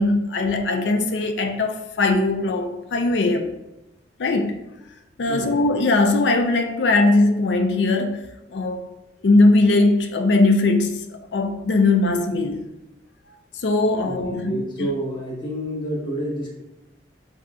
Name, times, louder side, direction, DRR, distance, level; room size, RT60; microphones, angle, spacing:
voice 1, 0.0-3.5 4.2-4.6 5.2-8.2 8.5-8.9 9.2-12.7 13.5-14.6, left 2 dB, 80° left, 0.5 m, -20 dB
voice 2, 5.3-5.6 14.0-16.5, right 1 dB, 25° left, 1.2 m, -29 dB
7.4 x 2.7 x 2.3 m
head